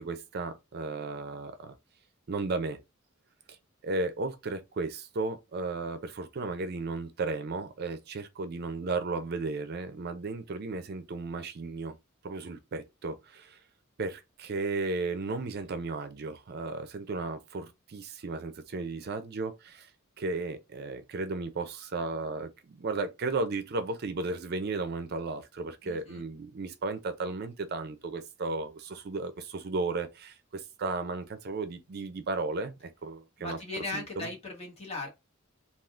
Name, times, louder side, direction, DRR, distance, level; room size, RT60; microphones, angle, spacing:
voice 1, 0.0-1.7 2.3-2.8 3.5-3.6 3.8-12.0 12.2-13.6 14.0-19.9 20.2-34.3, right 3 dB, 50° right, 0.4 m, -34 dB
voice 2, 25.8-26.2 33.4-35.1, left 2 dB, 30° left, 1.2 m, -38 dB
3.5 x 2.4 x 2.4 m
head